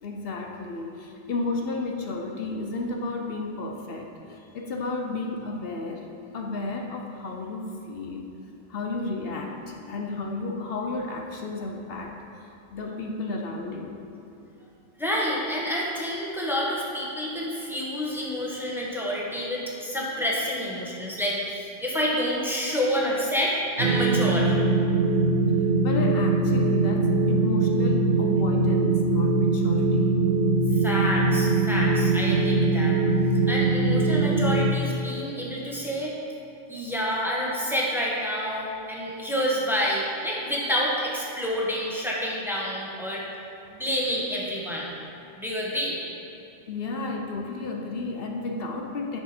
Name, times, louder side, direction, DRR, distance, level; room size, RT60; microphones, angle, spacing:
voice 1, 0.0-6.1 6.3-8.3 8.7-14.0 25.8-30.2 46.7-49.2, left 3 dB, 70° left, 1 dB, 0.9 m, -32 dB
voice 2, 15.0-24.5 30.8-33.0 33.5-36.1 36.7-43.2 43.7-44.9 45.4-46.0, equal, ahead, -5 dB, 1.3 m, -28 dB
sound 1, 23.8-34.7, right 3 dB, 85° right, 0.8 m, -22 dB
9.8 x 6.2 x 4.3 m, 2.7 s
omnidirectional pair, 1.0 m